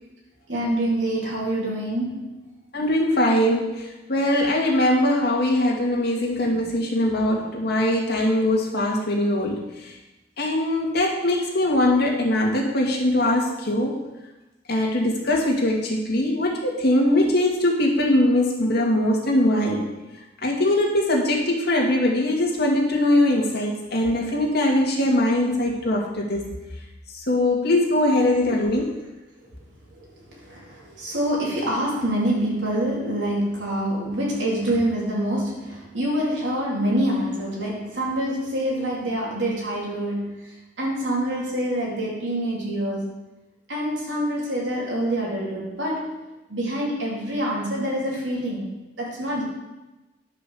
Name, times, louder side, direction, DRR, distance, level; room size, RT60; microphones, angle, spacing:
voice 1, 0.5-2.4 29.4-29.6 29.9-43.2 43.7-49.4, right 1 dB, 75° right, -4 dB, 3.7 m, -26 dB
voice 2, 2.7-10.0 10.4-14.0 14.7-19.9 20.4-26.5 27.1-28.9, left 1 dB, 60° left, -2 dB, 2.2 m, -21 dB
10.5 x 5.8 x 6.7 m, 1.0 s
head